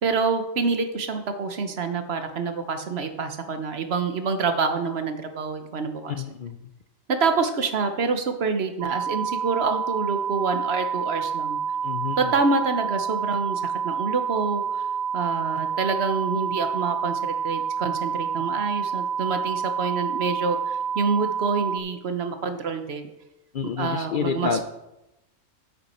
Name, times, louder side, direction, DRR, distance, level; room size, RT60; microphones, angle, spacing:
voice 1, 0.0-6.2 7.1-11.6 12.2-14.9 15.1-23.1 23.8-24.6, right 4 dB, 55° right, 8 dB, 1.1 m, -27 dB
voice 2, 6.1-6.7 11.8-12.2 23.5-24.6, left 6 dB, 55° left, 8 dB, 0.6 m, -28 dB
sound 1, 8.8-21.8, right 7 dB, 90° right, 1.0 m, -28 dB
9.0 x 8.1 x 4.3 m, 0.92 s
omnidirectional pair, 1.3 m